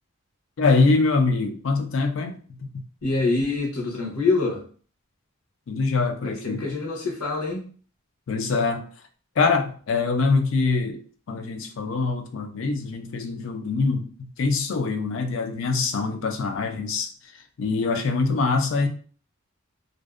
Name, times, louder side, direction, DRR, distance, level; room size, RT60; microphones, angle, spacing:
voice 1, 0.6-2.4 5.7-6.7 8.3-8.8 9.4-11.0 11.3-14.1 14.4-17.1 17.6-18.9, left 4 dB, 60° left, 6 dB, 0.3 m, -23 dB
voice 2, 3.0-4.6 6.2-7.7, left 3 dB, 85° left, -1 dB, 0.9 m, -25 dB
2.5 x 2.0 x 2.3 m, 0.42 s
head